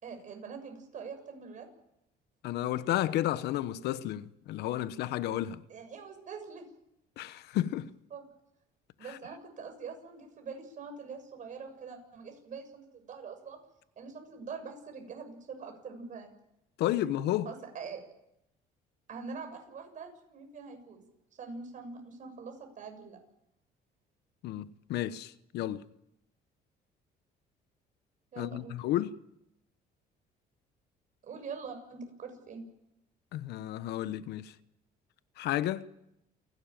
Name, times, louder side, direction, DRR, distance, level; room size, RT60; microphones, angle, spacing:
voice 1, 0.0-1.7 5.7-6.6 8.1-8.3 9.0-13.6 14.0-16.3 17.4-18.0 19.1-21.0 21.3-23.2 28.3-28.7 31.2-32.6, right 5 dB, 50° right, 7.0 m, -44 dB
voice 2, 2.4-5.6 7.2-7.9 16.8-17.5 24.4-25.8 28.4-29.1 33.3-34.5 35.4-35.9, left 13 dB, 80° left, 1.0 m, -32 dB
29.0 x 12.0 x 9.1 m
cardioid pair, 110°, 17 cm